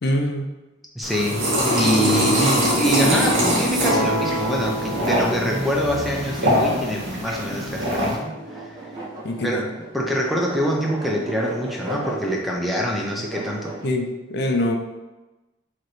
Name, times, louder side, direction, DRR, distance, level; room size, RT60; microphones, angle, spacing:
voice 1, 0.0-0.5 9.2-9.7 13.8-14.8, left 1 dB, 55° left, 3 dB, 0.5 m, -24 dB
voice 2, 1.0-1.4 1.7-8.7 9.4-9.6 9.9-13.7, equal, ahead, -2 dB, 0.4 m, -25 dB
sound 1, 1.0-8.1, equal, 90° right, 1.2 m, -22 dB
sound 2, 3.8-9.8, right 1 dB, 70° right, 0.6 m, -31 dB
sound 3, 7.0-13.9, right 1 dB, 20° right, 0.8 m, -37 dB
4.9 x 3.0 x 3.0 m, 1.1 s
head